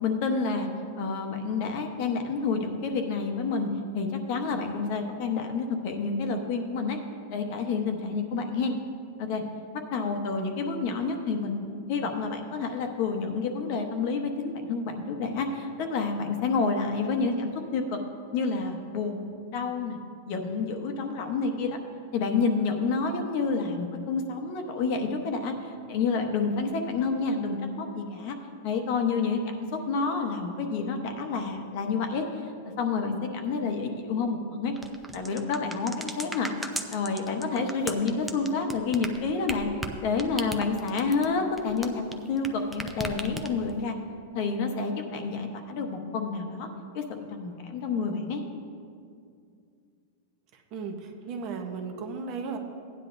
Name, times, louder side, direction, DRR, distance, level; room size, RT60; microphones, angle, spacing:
voice 1, 0.0-0.7 1.0-3.7 3.9-7.0 7.3-8.7 9.2-9.4 9.9-18.0 18.3-20.0 20.3-21.8 22.1-28.4 28.6-29.4 29.7-32.4 32.8-34.7 35.1-36.5 36.9-39.7 40.0-44.0 44.3-46.7 46.9-48.4, left 4 dB, 40° left, 4 dB, 0.9 m, -29 dB
sound 1, 34.8-42.5 42.7-43.8, right 1 dB, 5° right, 0.4 m, -36 dB
voice 2, 50.5-52.6, right 5 dB, 30° right, 4 dB, 0.8 m, -35 dB
16.5 x 9.9 x 2.6 m, 2.3 s
supercardioid pair, 175°, 0 cm